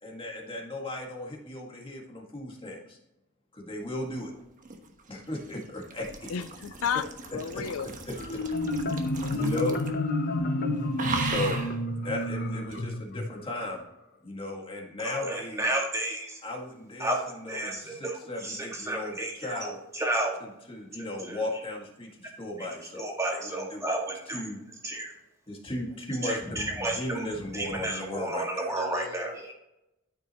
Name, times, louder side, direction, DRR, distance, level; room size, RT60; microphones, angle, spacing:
voice 1, 0.0-3.0 3.5-4.3 5.1-6.3 7.5-8.4 9.3-9.8 11.2-11.7 12.0-13.8 14.2-15.7 16.4-19.8 20.4-23.9 24.3-24.6 25.5-28.7, left 1 dB, 25° left, 0 dB, 1.9 m, -36 dB
sound 1, 4.3-10.1 10.3-10.6 11.0-11.8 12.7-12.8, right 3 dB, 40° right, 1.2 m, -37 dB
voice 2, 6.3-7.0 7.3-7.9 28.8-29.3, left 7 dB, 70° left, 13 dB, 0.4 m, -32 dB
Marimba xylophone, 8.2-13.7, left 1 dB, 45° left, 0.8 m, -30 dB
voice 3, 15.0-16.4 17.0-20.4 21.0-21.6 22.6-24.5 24.8-25.1 26.2-29.5, right 2 dB, 15° right, -1 dB, 1.9 m, -32 dB
12.5 x 6.2 x 3.0 m, 0.89 s
head